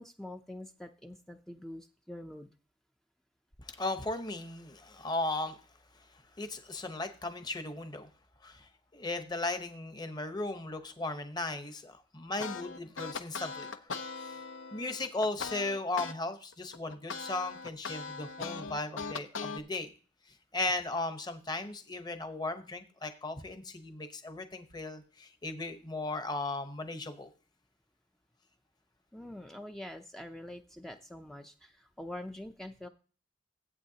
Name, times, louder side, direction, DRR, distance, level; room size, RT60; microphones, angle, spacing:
voice 1, 0.0-2.5 29.1-32.9, left 1 dB, ahead, 5 dB, 0.4 m, -45 dB
voice 2, 3.6-5.6 5.9-8.1 8.4-13.9 14.2-14.4 14.7-19.9 20.5-27.3, left 2 dB, 20° left, 8 dB, 0.9 m, -36 dB
sound 1, 12.4-16.2 16.5-19.6, left 5 dB, 75° left, 0.7 m, -40 dB
14.5 x 8.4 x 2.8 m, 0.38 s
head